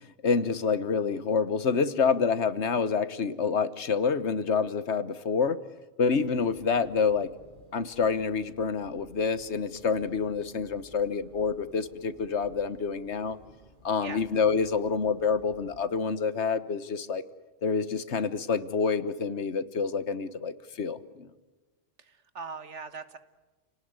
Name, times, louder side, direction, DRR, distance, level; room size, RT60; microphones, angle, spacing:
voice 1, 0.2-5.6 6.0-7.3 7.7-13.4 13.8-17.2 17.6-21.3, left 5 dB, 70° left, 14 dB, 1.4 m, -27 dB
sound 1, 6.2-15.8, equal, 45° right, 6.1 m, -56 dB
voice 2, 22.0-23.2, right 5 dB, 75° right, 11 dB, 1.8 m, -40 dB
30.0 x 18.5 x 9.6 m, 1.2 s
omnidirectional pair, 1.2 m